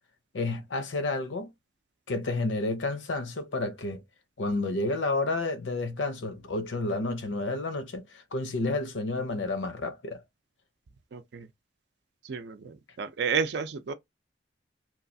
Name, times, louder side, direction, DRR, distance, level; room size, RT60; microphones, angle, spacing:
voice 1, 0.3-1.5 2.1-4.0 4.4-10.2, left 2 dB, 80° left, 0.6 m, -30 dB
voice 2, 11.1-11.5 12.2-13.9, right 6 dB, 60° right, 0.4 m, -31 dB
3.0 x 2.3 x 2.6 m
head